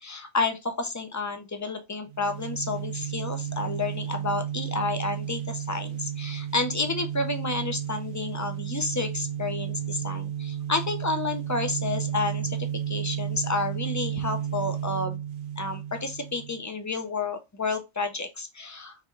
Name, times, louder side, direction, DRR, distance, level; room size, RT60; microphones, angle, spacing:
voice 1, 0.0-15.2 15.6-19.0, left 3 dB, 25° left, 0.4 m, -30 dB
sound 1, 2.1-16.6, right 10 dB, 55° right, 0.6 m, -33 dB
3.5 x 3.3 x 4.4 m
omnidirectional pair, 1.2 m